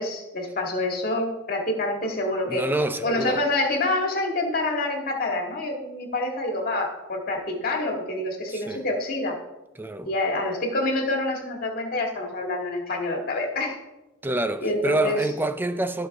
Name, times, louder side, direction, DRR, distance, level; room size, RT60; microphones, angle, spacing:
voice 1, 0.0-2.6 3.0-9.4 10.0-13.8 14.6-15.2, left 2 dB, 50° left, 2.0 m, -27 dB
voice 2, 2.5-3.4 8.5-8.9 9.8-10.1 14.2-16.1, right 2 dB, 10° right, 0.5 m, -27 dB
15.5 x 5.6 x 3.6 m
head